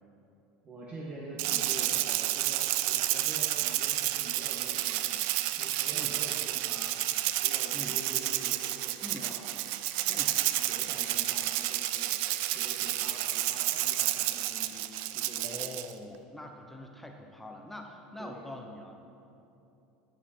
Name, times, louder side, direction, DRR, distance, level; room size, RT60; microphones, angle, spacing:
voice 1, 0.6-5.1 5.6-7.0 7.4-9.4 10.0-12.1 12.5-14.9 15.1-15.6 18.2-18.5, right 1 dB, 35° right, -5 dB, 1.4 m, -46 dB
Rattle (instrument), 1.4-15.9, right 15 dB, 70° right, 0.4 m, -30 dB
voice 2, 15.4-19.0, left 1 dB, 5° left, 2 dB, 0.8 m, -44 dB
13.0 x 4.9 x 4.4 m, 2.8 s
supercardioid pair, 100°, 3 cm